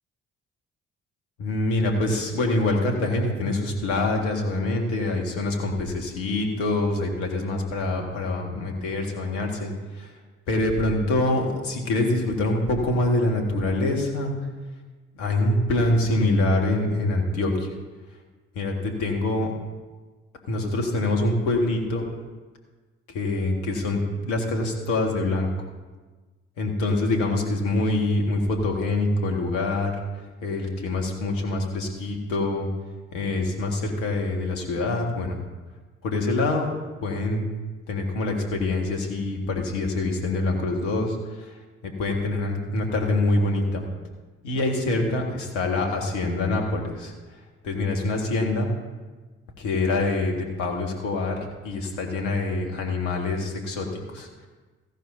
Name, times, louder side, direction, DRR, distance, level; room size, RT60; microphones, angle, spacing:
voice 1, 1.4-10.1 10.5-14.3 15.1-17.7 18.5-19.5 20.5-22.1 23.1-25.5 26.6-32.7 33.1-35.4 36.0-36.7 37.0-37.5 37.9-43.8 44.4-48.7 49.6-54.5, left 2 dB, 80° left, 2 dB, 2.0 m, -25 dB
16.0 x 11.5 x 2.8 m, 1.3 s
figure-of-eight pair, 45°, 36 cm